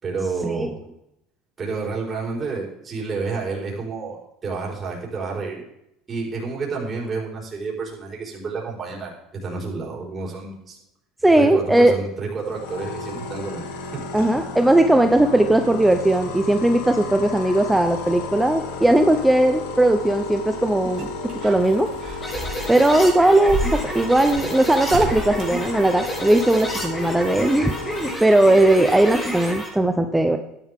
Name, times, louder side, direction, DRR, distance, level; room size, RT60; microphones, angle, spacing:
voice 1, 0.0-0.8 1.6-5.6 6.1-10.8 11.3-14.0, right 4 dB, 30° right, -3 dB, 4.9 m, -30 dB
voice 2, 11.2-11.9 14.1-21.1 21.4-21.9 22.7-30.4, right 1 dB, 5° right, 7 dB, 0.8 m, -18 dB
sound 1, 12.4-28.1, left 3 dB, 80° left, 2.6 m, -33 dB
sound 2, 20.4-26.4 27.9-28.7 29.0-29.1, right 1 dB, 45° right, 3.1 m, -33 dB
sound 3, 22.2-29.7, equal, 25° left, 5.1 m, -31 dB
12.5 x 11.0 x 3.7 m, 0.83 s
supercardioid pair, 110°, 0 cm